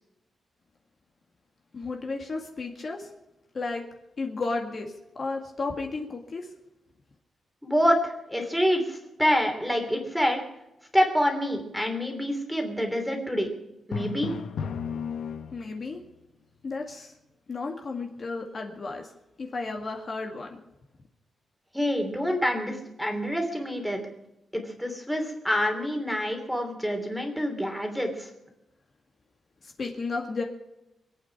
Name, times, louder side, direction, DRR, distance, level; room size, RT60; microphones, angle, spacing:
voice 1, 1.7-3.1 3.5-3.8 4.2-6.5 15.5-16.0 16.6-17.1 17.5-19.1 19.4-20.6 29.6-30.4, left 3 dB, 40° left, 2 dB, 2.0 m, -33 dB
voice 2, 7.6-10.4 10.9-13.5 13.9-14.3 21.7-24.0 24.5-28.3, equal, ahead, 4 dB, 3.0 m, -27 dB
Drum, 13.9-15.9, left 6 dB, 80° left, 1.2 m, -33 dB
25.0 x 8.9 x 6.0 m, 0.91 s
wide cardioid pair, 150°, 0 cm